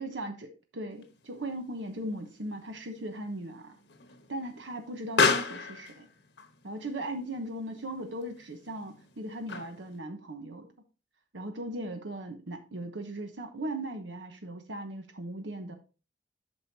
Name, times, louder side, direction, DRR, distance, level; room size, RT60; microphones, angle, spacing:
voice 1, 0.0-3.8 4.3-6.1 6.6-10.7 11.3-15.7, right 1 dB, 85° right, 1.0 m, -38 dB
Explosion, 1.0-10.0, left 4 dB, 70° left, 1.1 m, -34 dB
8.6 x 6.4 x 2.7 m
head